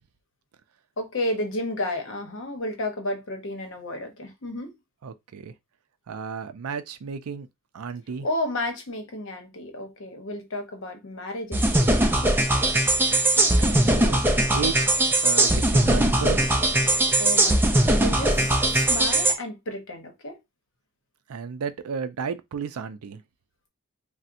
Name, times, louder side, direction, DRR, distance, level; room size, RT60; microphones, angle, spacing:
voice 1, 1.0-4.7 8.2-12.8 17.2-20.4, left 1 dB, 60° left, 0.8 m, -32 dB
voice 2, 5.0-5.5 6.1-7.5 7.7-8.3 13.6-14.2 14.5-14.9 15.2-16.5 21.3-23.2, right 6 dB, 85° right, 0.4 m, -33 dB
sound 1, 11.5-19.3, right 1 dB, 10° right, 0.4 m, -20 dB
4.1 x 2.1 x 2.5 m
head